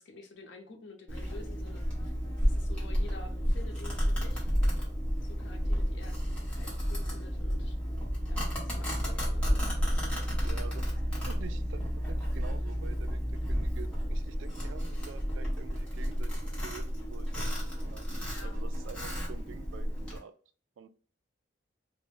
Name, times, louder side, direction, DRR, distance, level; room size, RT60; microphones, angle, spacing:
voice 1, 0.0-2.1 2.4-4.5 5.2-6.2 6.5-7.8 8.3-9.6 10.5-10.7 18.3-18.6, left 3 dB, 70° left, 4 dB, 0.5 m, -50 dB
Domestic sounds home sounds, 1.1-20.2, equal, 5° left, 0.9 m, -31 dB
voice 2, 10.4-11.8 12.1-18.1 18.4-20.3 20.8-20.9, right 6 dB, 80° right, 11 dB, 0.3 m, -48 dB
2.4 x 2.1 x 3.2 m, 0.42 s
head